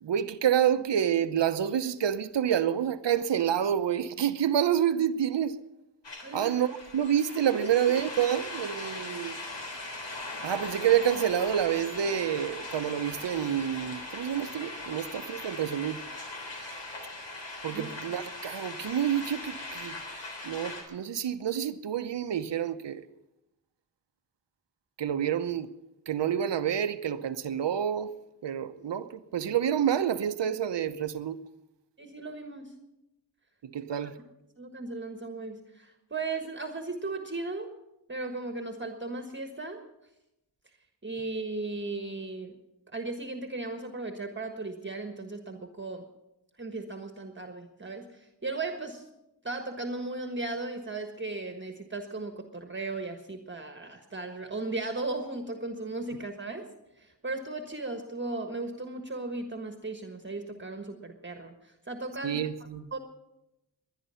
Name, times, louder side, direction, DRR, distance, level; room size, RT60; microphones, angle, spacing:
voice 1, 0.0-5.5 6.3-9.3 10.4-16.0 17.6-20.0 20.4-23.1 25.0-25.7 26.1-28.1 28.4-31.4 33.6-34.2 62.2-62.9, right 9 dB, 75° right, 0.9 m, -28 dB
sound 1, 6.0-20.8, left 2 dB, 75° left, 3.9 m, -40 dB
voice 2, 6.2-6.5 17.7-17.9 32.0-32.7 34.0-34.1 34.6-37.7 38.1-39.8 41.0-42.5 42.9-46.0 46.6-49.0 49.4-56.7 57.0-62.4 62.9-63.0, right 3 dB, 25° right, 1.4 m, -36 dB
20.5 x 10.5 x 5.7 m
wide cardioid pair, 85°, 43 cm